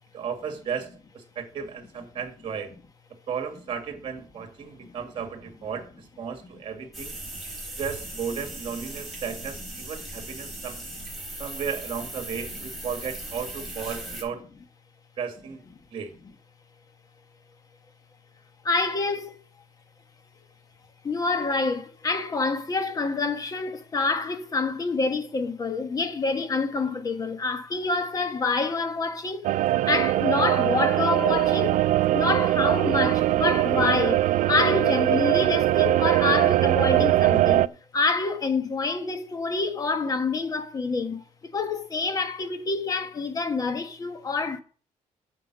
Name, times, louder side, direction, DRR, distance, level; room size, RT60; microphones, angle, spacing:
voice 1, 0.1-2.7 3.3-7.2 7.8-10.8 11.4-14.4 15.2-15.6 15.9-16.1, right 6 dB, 40° right, 2.1 m, -34 dB
sound 1, 6.9-14.2, right 1 dB, ahead, 4.3 m, -38 dB
voice 2, 18.6-19.3 21.0-29.5 29.9-31.8 32.1-41.2 41.5-44.6, left 3 dB, 30° left, 1.3 m, -27 dB
sound 2, 29.4-37.7, right 15 dB, 80° right, 0.4 m, -22 dB
9.5 x 6.8 x 6.2 m
cardioid pair, 160°, 13 cm